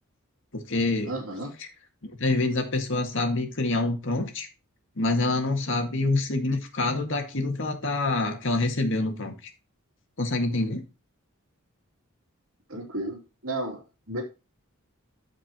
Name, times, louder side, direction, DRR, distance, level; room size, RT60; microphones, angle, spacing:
voice 1, 0.5-1.1 2.0-4.5 5.0-9.5 10.2-10.8, left 2 dB, 60° left, 1.9 m, -26 dB
voice 2, 1.1-1.5 12.7-14.2, right 1 dB, 70° right, 2.9 m, -33 dB
13.5 x 5.0 x 3.0 m
head